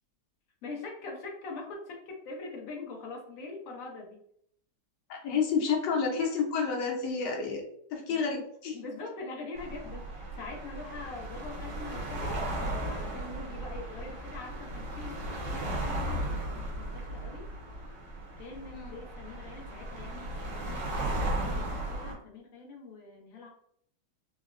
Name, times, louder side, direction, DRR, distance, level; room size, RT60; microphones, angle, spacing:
voice 1, 0.6-4.2 8.1-8.4 8.7-17.5 18.4-23.5, left 3 dB, 60° left, 0 dB, 1.1 m, -43 dB
voice 2, 5.1-7.6 7.9-8.8 18.7-19.0, left 5 dB, 80° left, 0 dB, 1.4 m, -30 dB
sound 1, 9.6-22.1, right 1 dB, 75° right, 1.4 m, -36 dB
3.9 x 2.0 x 2.4 m, 0.67 s
omnidirectional pair, 1.9 m